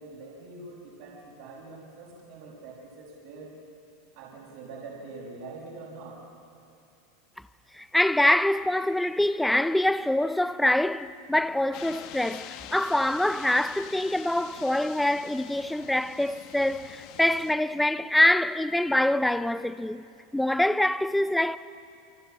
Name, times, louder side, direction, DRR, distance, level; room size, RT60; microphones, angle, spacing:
voice 1, 0.0-3.6 4.1-6.2, right 3 dB, 65° right, 5.5 m, -44 dB
voice 2, 7.7-20.1 20.3-21.6, left 1 dB, 5° left, 0.6 m, -25 dB
sound 1, 11.7-17.5, left 10 dB, 50° left, 1.5 m, -45 dB
29.0 x 23.5 x 7.3 m
supercardioid pair, 150°, 0 cm